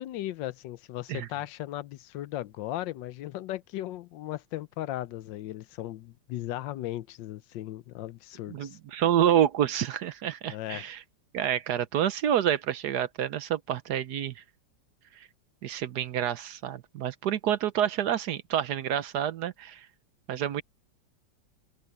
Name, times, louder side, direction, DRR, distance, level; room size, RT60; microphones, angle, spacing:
voice 1, 0.0-8.8 10.5-10.8, left 14 dB, 90° left, 1.4 m, -37 dB
voice 2, 8.5-11.0 11.3-14.4 15.6-19.9 20.3-20.6, right 10 dB, 65° right, 1.3 m, -28 dB
open air
omnidirectional pair, 2.0 m